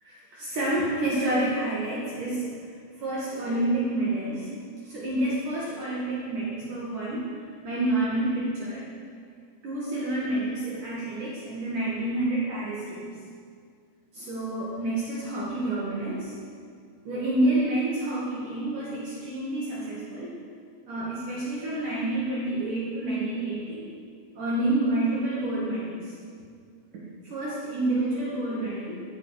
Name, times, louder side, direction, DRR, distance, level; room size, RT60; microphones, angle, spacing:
voice 1, 0.0-2.5 2.9-4.5 4.8-7.3 7.6-8.9 9.6-13.1 14.1-16.3 17.0-20.4 20.9-23.8 24.4-26.1 27.2-29.0, right 1 dB, 55° right, -7 dB, 3.3 m, -28 dB
15.0 x 10.5 x 5.0 m, 2.2 s
omnidirectional pair, 4.5 m